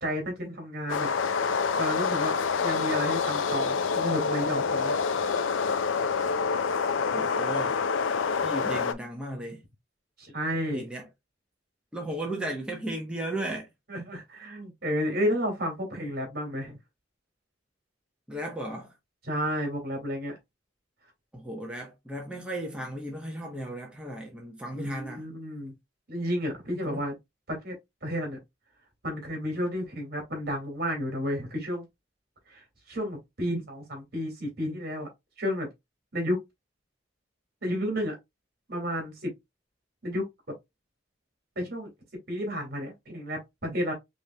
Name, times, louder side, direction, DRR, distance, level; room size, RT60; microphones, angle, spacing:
voice 1, 0.0-1.1 1.8-5.0 10.2-10.9 13.9-16.8 19.2-20.4 24.7-25.7 26.1-27.1 27.6-27.7 28.0-28.4 29.0-31.8 32.5-35.1 35.4-35.7 36.1-36.4 37.6-38.2 38.7-39.3 40.0-40.2 41.6-41.9 42.3-43.9, equal, 55° right, 2.1 m, -31 dB
sound 1, 0.9-8.9, left 5 dB, 85° left, 0.5 m, -27 dB
voice 2, 7.1-7.8 8.4-9.6 10.7-11.0 11.9-13.6 18.3-18.9 21.3-25.3 26.8-27.0, right 1 dB, 5° right, 0.9 m, -35 dB
5.3 x 3.2 x 2.3 m
head